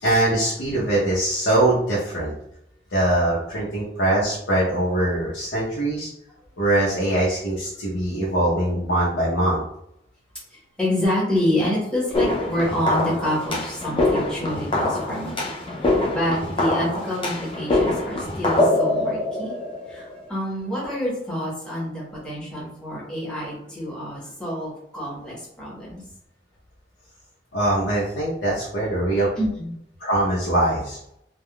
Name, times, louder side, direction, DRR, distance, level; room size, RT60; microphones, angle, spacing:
voice 1, 0.0-2.3 2.9-6.1 6.6-9.6 27.5-29.3 30.0-31.0, right 1 dB, 80° left, -7 dB, 0.8 m, -22 dB
voice 2, 10.5-15.3 15.8-19.5 19.9-26.0 29.4-29.7, left 1 dB, 5° left, -7 dB, 1.1 m, -27 dB
sound 1, 12.1-20.3, left 2 dB, 30° left, 0.4 m, -24 dB
3.4 x 2.2 x 2.2 m, 0.76 s
head